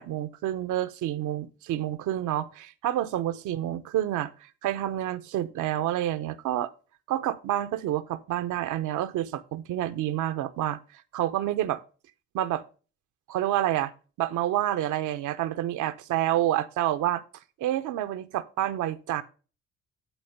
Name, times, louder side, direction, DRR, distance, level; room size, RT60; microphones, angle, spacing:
voice 1, 0.0-4.3 4.6-6.7 7.1-10.8 11.1-11.8 12.3-12.6 13.3-13.9 14.2-17.2 17.6-19.2, right 12 dB, 75° right, 0.9 m, -28 dB
11.5 x 4.3 x 5.4 m
supercardioid pair, 55°, 31 cm